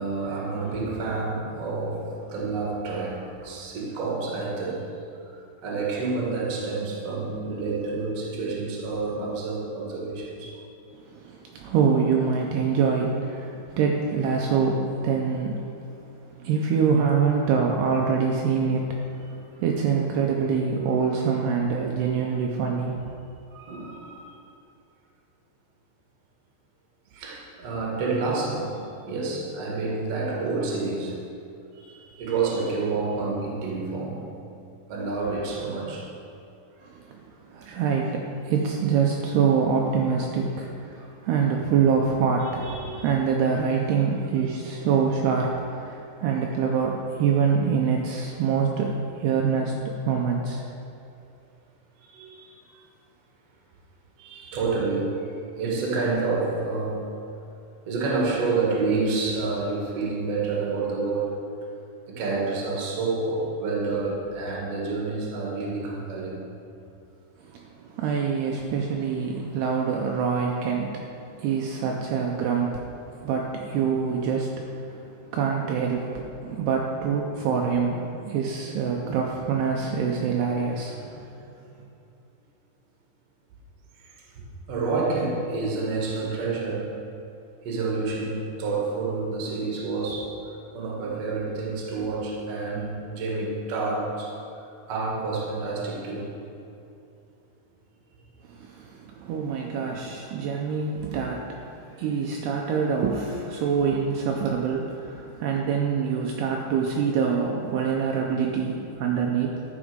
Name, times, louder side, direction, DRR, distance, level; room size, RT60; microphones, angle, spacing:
voice 1, 0.0-5.0 5.3-10.6 23.5-24.4 27.1-31.3 31.7-34.4 34.9-36.1 36.8-36.9 41.0-41.1 42.4-43.0 52.0-52.8 54.2-57.1 57.9-61.3 62.1-66.5 84.0-87.0 87.6-96.4 101.9-102.0, right 3 dB, 55° right, -3 dB, 1.9 m, -29 dB
voice 2, 11.1-15.6 16.4-19.0 19.6-23.1 36.9-37.2 37.5-49.7 50.1-50.6 67.4-75.0 75.3-81.3 98.5-109.6, right 6 dB, 85° right, 0 dB, 2.3 m, -25 dB
12.5 x 6.1 x 5.0 m, 2.7 s
omnidirectional pair, 5.3 m